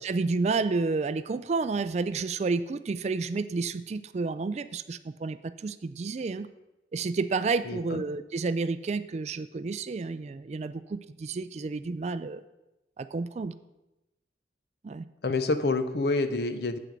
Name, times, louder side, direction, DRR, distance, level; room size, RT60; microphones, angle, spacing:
voice 1, 0.0-6.5 6.9-12.4 13.0-13.5 14.8-15.0, right 4 dB, 40° right, 14 dB, 0.3 m, -30 dB
voice 2, 7.6-8.0 15.2-16.8, left 3 dB, 60° left, 11 dB, 0.6 m, -27 dB
7.9 x 7.7 x 5.2 m, 0.97 s
head